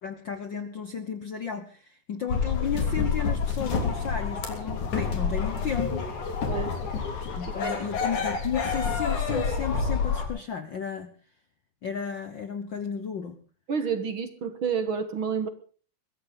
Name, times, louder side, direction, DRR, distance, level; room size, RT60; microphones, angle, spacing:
voice 1, 0.0-6.1 7.3-11.1 11.8-13.4, left 7 dB, 60° left, 9 dB, 1.2 m, -33 dB
sound 1, 2.3-10.3, left 5 dB, 75° left, 4.6 m, -28 dB
voice 2, 13.7-15.5, right 6 dB, 50° right, 10 dB, 1.8 m, -29 dB
22.0 x 15.5 x 3.9 m, 0.40 s
omnidirectional pair, 3.4 m